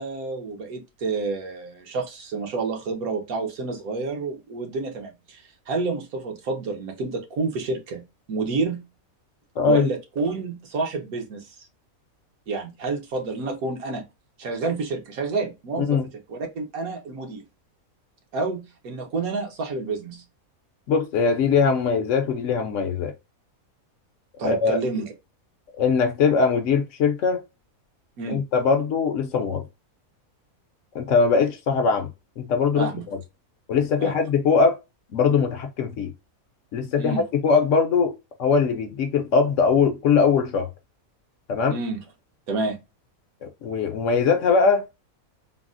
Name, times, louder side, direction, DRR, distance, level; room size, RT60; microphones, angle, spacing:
voice 1, 0.0-8.0 8.3-8.8 9.6-11.6 12.5-14.0 14.4-16.0 16.3-17.4 18.3-20.2 24.4-25.1 28.2-28.4 32.8-33.0 34.0-34.1 37.0-37.2 41.7-42.0 42.5-42.8, right 3 dB, 75° right, 1.4 m, -29 dB
voice 2, 9.6-9.9 15.8-16.1 20.9-23.1 24.4-24.8 25.8-27.4 28.3-29.6 30.9-32.1 32.4-32.9 33.7-34.8 35.1-36.1 36.7-38.1 38.4-40.7 41.5-41.8 43.4-44.9, left 5 dB, 65° left, 0.9 m, -21 dB
3.9 x 2.0 x 2.4 m
omnidirectional pair, 1.5 m